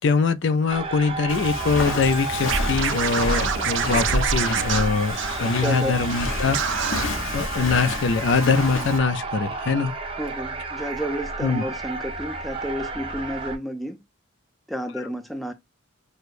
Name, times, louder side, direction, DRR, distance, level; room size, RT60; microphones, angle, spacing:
voice 1, 0.0-6.6 7.3-9.9 11.4-11.6, left 4 dB, 60° left, 0.4 m, -23 dB
sound 1, 0.7-13.6, right 4 dB, 25° right, 0.9 m, -32 dB
Walk footsteps, 1.3-9.0, left 1 dB, 80° left, 0.9 m, -29 dB
Scratching (performance technique), 2.5-5.8 6.1-6.2 6.5-7.0, right 9 dB, 65° right, 0.4 m, -27 dB
voice 2, 5.6-6.0 10.2-14.0 14.7-15.5, equal, ahead, 0.5 m, -31 dB
6.3 x 2.2 x 2.5 m
head